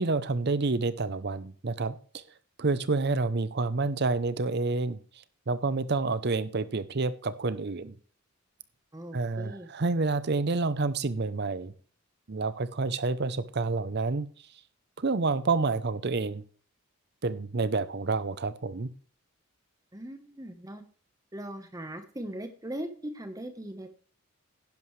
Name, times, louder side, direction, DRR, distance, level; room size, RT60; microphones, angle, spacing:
voice 1, 0.0-2.2 2.6-5.0 5.5-7.9 9.1-11.7 12.3-14.3 15.0-16.4 17.2-18.9, right 3 dB, 50° right, 15 dB, 0.7 m, -28 dB
voice 2, 8.9-9.7 19.9-20.8 21.3-23.9, right 1 dB, 15° right, 8 dB, 1.1 m, -39 dB
11.0 x 10.5 x 3.2 m, 0.42 s
head